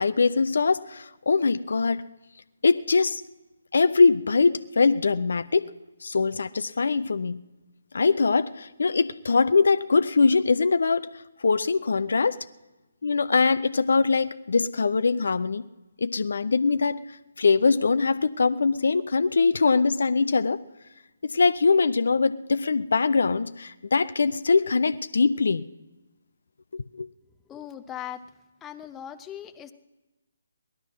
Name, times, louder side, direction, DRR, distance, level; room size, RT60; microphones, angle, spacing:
voice 1, 0.0-2.1 2.6-3.2 3.7-5.7 6.0-7.4 7.9-12.4 13.0-15.7 16.0-17.0 17.4-20.6 21.2-25.6 26.7-27.1, left 4 dB, 60° left, 15 dB, 0.5 m, -22 dB
voice 2, 27.5-28.2 28.6-29.7, left 10 dB, 10° left, 7 dB, 0.7 m, -39 dB
18.0 x 12.0 x 6.2 m, 1.1 s
figure-of-eight pair, 140°, 0 cm